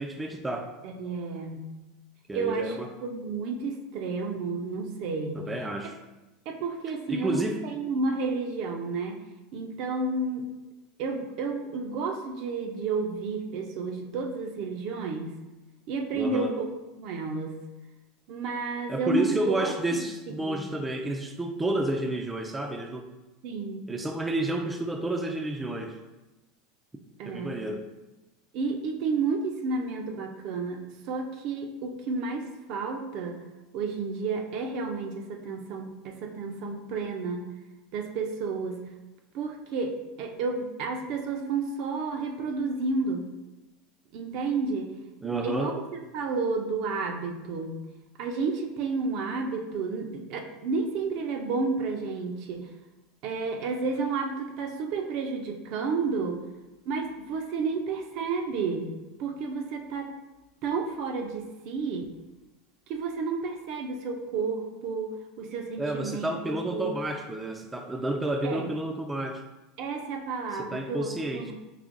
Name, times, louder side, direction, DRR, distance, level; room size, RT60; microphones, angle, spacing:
voice 1, 0.0-0.7 2.3-2.9 5.3-6.0 7.1-7.6 16.1-16.5 18.9-23.1 23.9-26.0 27.2-27.8 45.2-45.7 65.8-69.4 70.6-71.5, right 2 dB, 10° right, 4 dB, 0.4 m, -30 dB
voice 2, 0.8-1.6 2.3-5.5 6.5-9.2 9.5-10.5 11.0-15.3 15.9-16.7 17.0-17.6 18.3-19.7 20.3-20.6 23.4-23.9 27.2-27.5 28.5-33.4 33.7-37.5 37.9-38.8 39.3-43.3 44.1-44.9 45.2-47.7 48.2-52.7 53.2-56.4 56.9-58.9 59.2-60.1 60.6-62.1 62.9-65.1 65.4-66.9 68.4-68.7 69.8-71.5, right 4 dB, 60° right, 4 dB, 0.5 m, -31 dB
4.8 x 2.7 x 2.6 m, 1.1 s
supercardioid pair, 105°, 0 cm